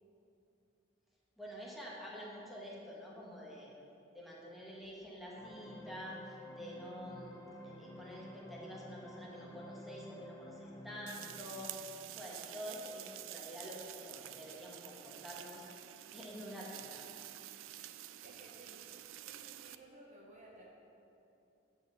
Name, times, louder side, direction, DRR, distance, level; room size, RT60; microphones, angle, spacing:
voice 1, 1.4-3.7 4.1-7.3 7.6-15.7 16.1-17.1, equal, ahead, -5 dB, 1.3 m, -48 dB
sound 1, 5.4-11.4, equal, 15° left, 0.7 m, -51 dB
sound 2, 11.1-19.8, right 13 dB, 85° right, 0.3 m, -49 dB
voice 2, 18.2-18.8 19.3-20.7, right 1 dB, 40° right, -3 dB, 0.9 m, -56 dB
7.8 x 4.5 x 6.9 m, 2.8 s
head